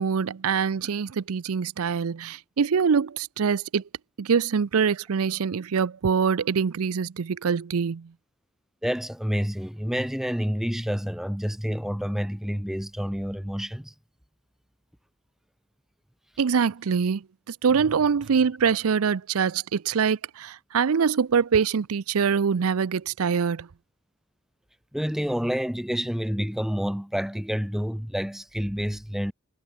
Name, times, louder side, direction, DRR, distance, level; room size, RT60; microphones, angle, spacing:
voice 1, 0.0-3.8 4.2-8.1 16.4-23.7, right 6 dB, 80° right, 0.5 m, -24 dB
voice 2, 8.8-13.9 24.9-29.3, equal, ahead, 0.6 m, -28 dB
head